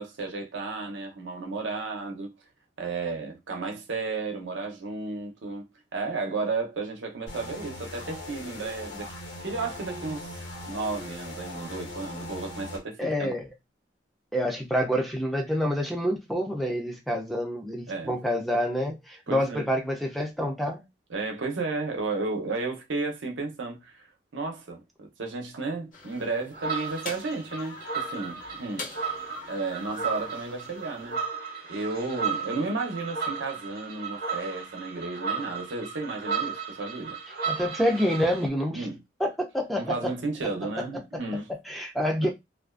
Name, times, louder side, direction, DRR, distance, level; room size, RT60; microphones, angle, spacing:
voice 1, 0.0-2.3 2.8-5.7 5.9-9.1 9.4-10.3 10.7-13.3 17.9-18.1 19.3-19.7 21.1-24.1 24.3-28.9 29.1-31.2 31.7-37.2 38.7-39.0 39.8-41.5 42.2-42.3, right 3 dB, 85° right, 0.7 m, -33 dB
sound 1, 7.3-12.8, left 1 dB, 70° left, 1.1 m, -40 dB
voice 2, 13.0-13.5 14.3-20.8 37.5-38.9 39.2-40.1 41.7-42.3, equal, ahead, 0.3 m, -27 dB
sound 2, 25.9-31.2, left 2 dB, 45° left, 0.7 m, -43 dB
sound 3, 26.5-38.5, right 6 dB, 50° right, 0.8 m, -34 dB
2.4 x 2.2 x 2.3 m
head